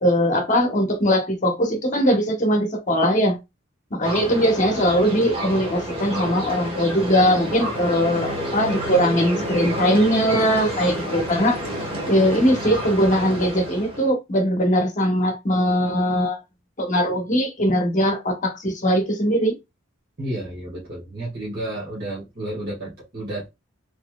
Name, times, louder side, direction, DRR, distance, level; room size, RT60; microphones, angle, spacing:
voice 1, 0.0-3.4 3.9-11.6 12.1-16.4 16.8-19.6, equal, 35° left, 0.9 m, -20 dB
sound 1, 4.0-14.1, equal, 25° right, 1.1 m, -29 dB
voice 2, 20.2-23.5, right 1 dB, 45° right, 1.6 m, -31 dB
4.1 x 3.1 x 2.2 m
head